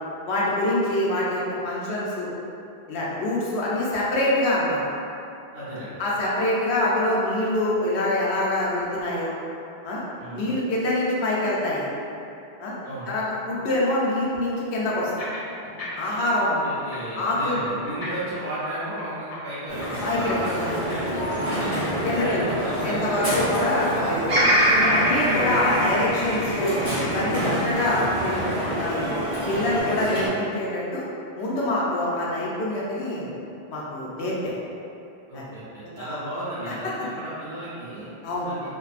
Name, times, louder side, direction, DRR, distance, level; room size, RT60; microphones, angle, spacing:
voice 1, 0.2-2.3 2.9-4.8 6.0-9.3 9.8-10.0 10.3-11.9 12.6-12.7 13.1-15.1 16.0-16.5 17.2-17.6 20.0-20.4 22.0-24.2 24.7-26.7 27.1-29.1 29.5-31.0 31.4-33.3 33.7-34.5 35.3-35.4 36.0-36.2 36.7-36.8 38.2-38.5, left 1 dB, 85° left, -6 dB, 0.9 m, -25 dB
voice 2, 5.5-6.0 10.2-10.4 12.8-13.1 16.4-21.7 22.3-23.7 25.2-25.5 35.3-38.1 38.5-38.7, right 1 dB, 70° right, -12 dB, 0.9 m, -34 dB
sound 1, 15.2-16.2 16.4-21.3, left 2 dB, 45° left, 0.5 m, -38 dB
Crowd, 19.7-30.3, equal, 20° right, 1.2 m, -27 dB
Bird vocalization bird call bird song, 24.3-28.5 29.1-29.8, equal, 45° right, 0.4 m, -24 dB
2.6 x 2.4 x 2.4 m, 2.6 s
omnidirectional pair, 1.1 m